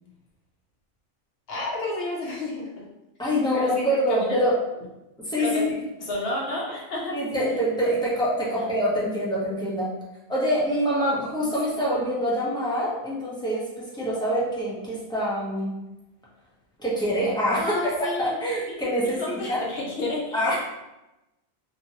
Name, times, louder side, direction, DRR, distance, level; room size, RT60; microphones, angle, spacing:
voice 1, 1.5-2.8 3.5-4.4 5.4-5.6 6.1-7.6 8.5-8.7 11.9-12.0 17.5-18.4 18.7-18.8 19.0-20.4, left 1 dB, 55° left, -3 dB, 0.8 m, -31 dB
voice 2, 3.2-4.5 5.2-5.6 7.1-9.9 10.3-15.8 16.8-17.7 18.2-19.6 20.3-20.6, equal, 5° left, -7 dB, 0.5 m, -25 dB
2.9 x 2.7 x 2.8 m, 0.96 s
omnidirectional pair, 1.4 m